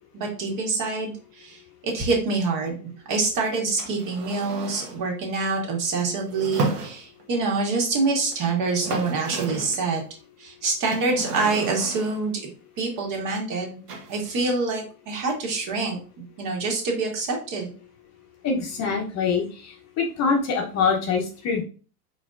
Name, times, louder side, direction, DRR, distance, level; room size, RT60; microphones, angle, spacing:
voice 1, 0.1-10.0 10.4-12.3 12.8-13.8 14.1-16.0 16.4-17.7, right 3 dB, 40° right, 0 dB, 1.9 m, -26 dB
sound 1, 3.8-5.0 6.3-7.4 8.3-8.4 8.6-9.9 10.8-12.3 13.9-14.5, right 3 dB, 70° right, 1.5 m, -33 dB
voice 2, 18.4-21.6, left 5 dB, 35° left, 2 dB, 1.0 m, -24 dB
4.4 x 4.2 x 2.5 m, 0.38 s
hypercardioid pair, 100°, 48 cm